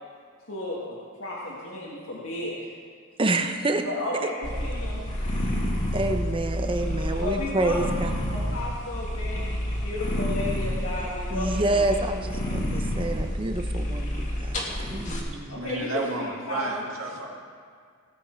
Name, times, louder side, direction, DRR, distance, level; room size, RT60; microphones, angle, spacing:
voice 1, 0.5-2.5 3.8-4.3 4.6-5.0 7.2-11.8 15.5-16.8, left 1 dB, 75° left, -5 dB, 1.7 m, -33 dB
voice 2, 3.2-3.8 5.9-8.1 11.3-15.6, right 2 dB, 25° right, 6 dB, 0.7 m, -28 dB
sound 1, 4.4-15.2, left 1 dB, 35° left, 1.7 m, -29 dB
voice 3, 15.5-17.3, right 2 dB, 70° right, 0 dB, 1.9 m, -32 dB
18.0 x 8.2 x 4.5 m, 2.1 s
head